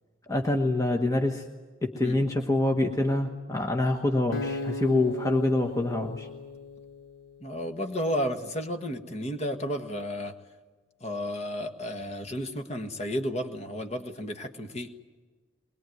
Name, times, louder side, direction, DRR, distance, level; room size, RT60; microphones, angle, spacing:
voice 1, 0.3-1.5 1.8-6.3, left 2 dB, 15° left, 3 dB, 1.2 m, -26 dB
Acoustic guitar, 4.3-7.5, left 2 dB, 80° left, 1.3 m, -37 dB
voice 2, 7.4-10.3 11.0-14.9, equal, 30° left, 6 dB, 1.5 m, -32 dB
22.0 x 21.0 x 9.3 m, 1.3 s
head